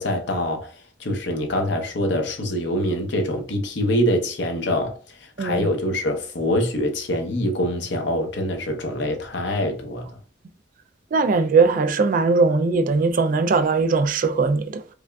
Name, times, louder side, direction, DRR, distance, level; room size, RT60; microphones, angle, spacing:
voice 1, 0.0-10.2, left 1 dB, 65° left, 0.8 m, -25 dB
voice 2, 11.1-14.9, right 4 dB, 45° right, 0.4 m, -20 dB
4.9 x 2.4 x 2.3 m
head